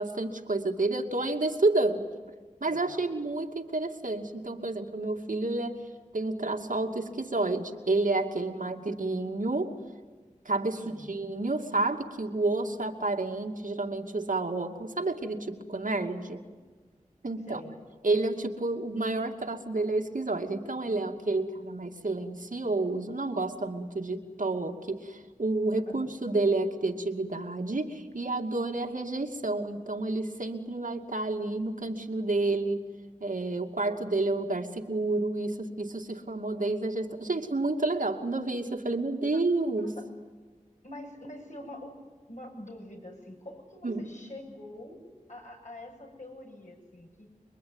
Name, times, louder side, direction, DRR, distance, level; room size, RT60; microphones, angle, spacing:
voice 1, 0.0-2.1 2.6-5.8 6.1-9.8 10.4-16.4 17.2-17.6 18.0-32.9 33.2-40.0 43.8-44.1, right 2 dB, 75° right, 3 dB, 2.5 m, -30 dB
voice 2, 2.7-3.1 8.5-8.9 10.7-11.2 17.5-17.7 25.9-26.1 39.2-39.4 39.8-40.0 40.8-42.0 42.3-45.0 45.3-47.3, left 1 dB, 60° left, 1 dB, 7.3 m, -45 dB
26.0 x 23.0 x 9.7 m, 1.4 s
wide cardioid pair, 55°, 14 cm